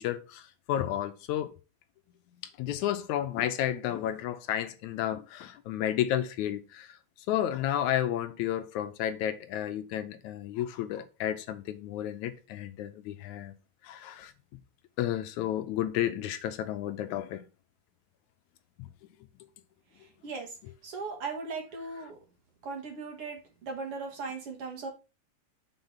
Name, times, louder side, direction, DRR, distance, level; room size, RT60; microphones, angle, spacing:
voice 1, 0.0-1.5 2.6-6.9 7.3-13.6 13.8-14.3 15.0-17.4 18.8-18.9, left 11 dB, 80° left, 2.1 m, -32 dB
voice 2, 20.2-20.5 20.8-22.2 22.6-24.9, right 4 dB, 55° right, 2.1 m, -38 dB
6.8 x 3.9 x 5.8 m
omnidirectional pair, 3.4 m